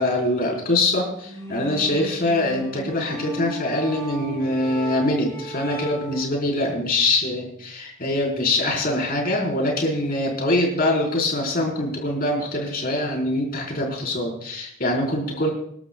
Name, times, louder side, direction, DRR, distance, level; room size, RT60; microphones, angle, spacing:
voice 1, 0.0-15.5, left 1 dB, 45° left, -1 dB, 4.5 m, -23 dB
sound 1, 1.2-6.2, equal, 15° left, 5.4 m, -35 dB
28.0 x 12.0 x 2.3 m, 0.67 s
head